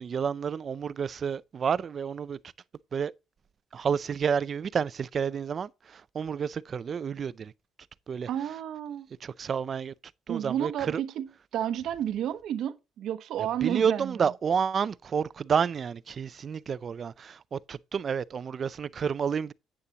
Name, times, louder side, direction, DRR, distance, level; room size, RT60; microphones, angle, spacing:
voice 1, 0.0-2.4 2.9-3.1 3.7-7.5 8.1-8.3 9.2-9.9 10.3-11.0 13.6-19.5, right 7 dB, 40° right, 0.4 m, -30 dB
voice 2, 8.3-9.1 10.3-11.3 11.5-14.3, right 10 dB, 70° right, 0.9 m, -31 dB
10.5 x 8.8 x 2.9 m
cardioid pair, 130°, 0 cm